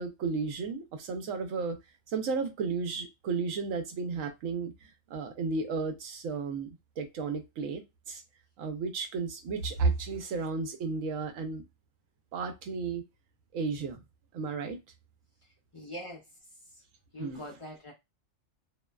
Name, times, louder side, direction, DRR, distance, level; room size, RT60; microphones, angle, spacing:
voice 1, 0.0-1.8 2.1-8.2 8.6-11.6 12.3-13.0 13.5-14.0 14.3-14.8 17.2-17.4, right 4 dB, 80° right, 1.0 m, -33 dB
voice 2, 15.7-16.2 17.1-17.9, left 1 dB, 30° left, 0.6 m, -42 dB
2.6 x 2.1 x 2.3 m
omnidirectional pair, 1.4 m